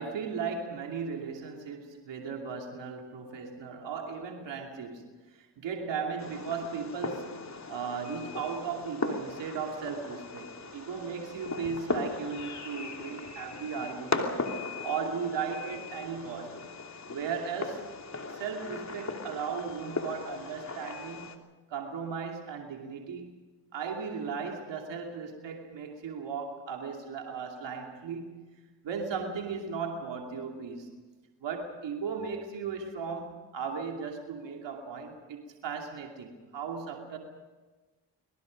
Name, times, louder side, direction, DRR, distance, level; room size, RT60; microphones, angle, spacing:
voice 1, 0.0-5.1 5.4-7.3 7.7-14.5 14.8-16.6 17.1-17.8 18.3-21.3 21.7-23.3 23.7-28.4 28.8-31.0 31.4-37.2, right 6 dB, 90° right, 2 dB, 2.8 m, -36 dB
Fireworks, 6.2-21.4, left 3 dB, 40° left, 2.9 m, -38 dB
25.0 x 22.5 x 5.3 m, 1.3 s
cardioid pair, 55°, 43 cm